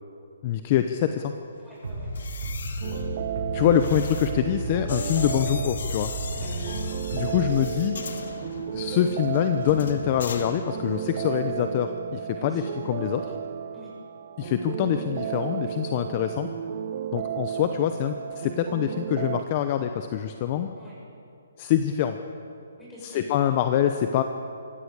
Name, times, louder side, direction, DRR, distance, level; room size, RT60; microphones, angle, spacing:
voice 1, 0.4-1.3 3.5-6.1 7.1-8.0 8.7-13.3 14.4-16.5 17.1-20.7 21.6-22.2 23.1-24.2, left 10 dB, 30° left, 8 dB, 0.9 m, -25 dB
voice 2, 1.6-2.1 6.3-6.9 12.3-12.7 13.7-13.9 16.2-16.3 20.8-21.0 22.8-23.7, left 1 dB, 5° left, -7 dB, 7.6 m, -45 dB
Bass drum, 1.8-7.4, equal, 80° right, 6.8 m, -33 dB
sound 1, 2.0-11.1 11.4-11.7, left 5 dB, 65° left, 2.1 m, -39 dB
sound 2, 2.8-19.4, right 10 dB, 40° right, 0.9 m, -34 dB
24.5 x 15.0 x 8.3 m, 2.6 s
hypercardioid pair, 160°, 0 cm